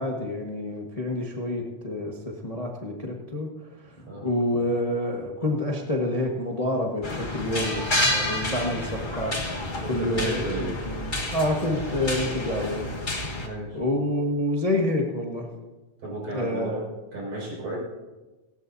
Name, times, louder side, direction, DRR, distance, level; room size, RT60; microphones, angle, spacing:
voice 1, 0.0-3.5 4.2-9.4 9.9-10.4 10.6-12.9 13.7-15.5 16.3-16.8, left 1 dB, 65° left, 0 dB, 0.3 m, -28 dB
sound 1, 7.0-13.5, left 1 dB, 40° left, 0.7 m, -29 dB
voice 2, 9.8-10.7 13.4-13.8 16.0-16.8 17.1-17.8, right 1 dB, 70° right, -5 dB, 7.2 m, -33 dB
18.5 x 17.5 x 2.7 m, 1.1 s
omnidirectional pair, 3.4 m